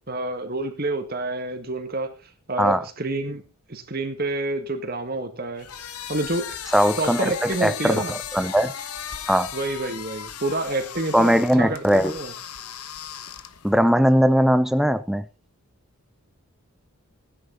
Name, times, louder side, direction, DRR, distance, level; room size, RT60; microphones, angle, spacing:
voice 1, 0.1-2.1 2.5-5.7 6.1-6.6 7.0-8.1 9.5-12.3, right 2 dB, 40° right, 1.7 m, -28 dB
sound 1, 5.6-13.8, left 8 dB, 85° left, 1.2 m, -36 dB
voice 2, 6.7-8.7 9.3-9.5 11.1-12.1 13.6-15.3, equal, ahead, 0.6 m, -20 dB
15.5 x 10.5 x 4.0 m
head